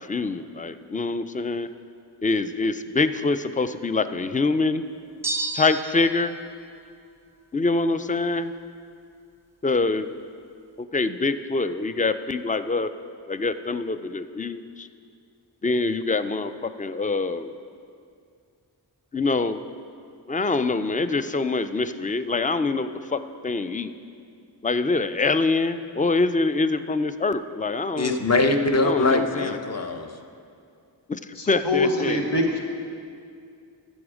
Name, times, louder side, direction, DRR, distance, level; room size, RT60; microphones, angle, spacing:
voice 1, 0.1-1.7 2.2-4.8 5.5-6.4 7.5-8.5 9.6-10.1 10.8-12.9 13.3-14.9 15.6-17.5 19.1-19.6 20.3-23.9 24.6-28.1 28.8-29.6 31.1-31.2 31.5-32.2, left 3 dB, 20° left, 11 dB, 0.3 m, -25 dB
sound 1, 5.2-6.2, right 3 dB, 5° right, 0.8 m, -30 dB
voice 2, 28.0-30.1, left 2 dB, 35° left, 6 dB, 0.8 m, -22 dB
voice 3, 31.3-32.6, left 1 dB, 75° left, 1 dB, 1.3 m, -24 dB
14.0 x 6.3 x 4.9 m, 2.4 s
wide cardioid pair, 60°, 42 cm